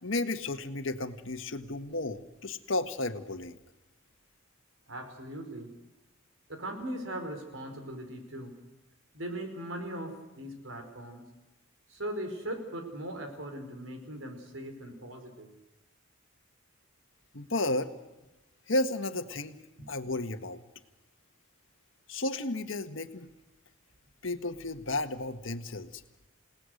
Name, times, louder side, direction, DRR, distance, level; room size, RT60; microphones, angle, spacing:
voice 1, 0.0-3.6 17.3-17.9 18.7-19.6 19.9-20.6 22.1-23.3 24.2-26.0, left 2 dB, 75° left, 8 dB, 1.5 m, -33 dB
voice 2, 4.9-5.7 6.5-8.6 9.1-11.3 11.9-15.5, right 1 dB, 85° right, 5 dB, 5.1 m, -39 dB
29.5 x 18.0 x 6.6 m, 1.0 s
head